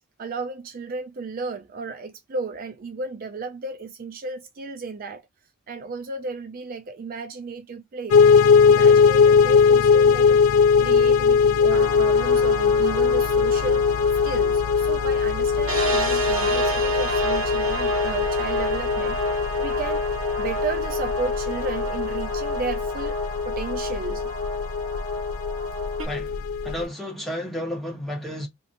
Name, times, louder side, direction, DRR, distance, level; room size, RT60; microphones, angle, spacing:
voice 1, 0.2-5.2 5.7-8.2 8.7-10.4 10.8-13.9 14.2-20.0 20.4-23.2 23.5-24.3, right 4 dB, 45° right, 0.3 m, -34 dB
sound 1, 8.1-26.8, left 6 dB, 80° left, 0.3 m, -20 dB
sound 2, 11.7-26.1, right 1 dB, 70° right, 1.4 m, -30 dB
voice 2, 26.0-28.5, left 1 dB, ahead, 1.0 m, -32 dB
2.9 x 2.5 x 2.5 m
head